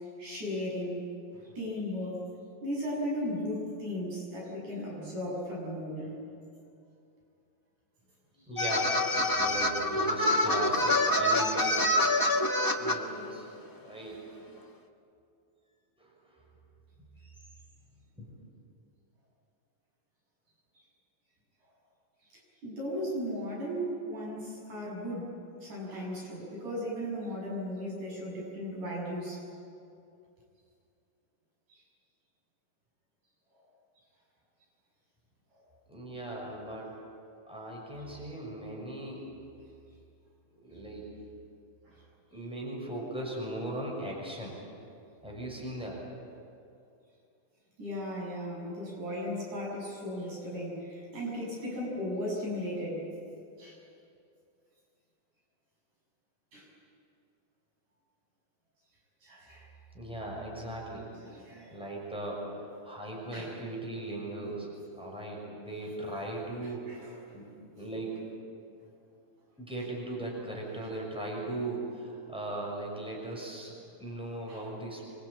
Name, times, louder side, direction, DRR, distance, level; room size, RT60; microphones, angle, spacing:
voice 1, 0.2-1.0 1.3-2.2 2.6-6.2 22.6-29.4 31.7-31.8 35.5-35.6 41.9-42.0 47.8-53.0 53.6-53.8 56.5-56.7 59.2-59.7 61.2-61.8 63.3-63.6 66.9-67.1 74.5-74.6, equal, 70° right, -3 dB, 8.6 m, -36 dB
voice 2, 8.5-9.0 9.3-12.0 12.8-13.5 13.8-14.2 16.0-16.1 17.2-17.3 18.1-18.3 35.9-37.1 37.5-39.3 40.5-41.1 42.3-44.6 45.2-46.0 59.9-61.1 61.7-67.5 67.8-68.2 69.6-73.7 74.0-75.0, right 1 dB, ahead, -2 dB, 6.3 m, -38 dB
sound 1, 8.6-13.0, left 1 dB, 25° left, 0.5 m, -26 dB
26.5 x 24.5 x 8.7 m, 2.5 s
omnidirectional pair, 3.5 m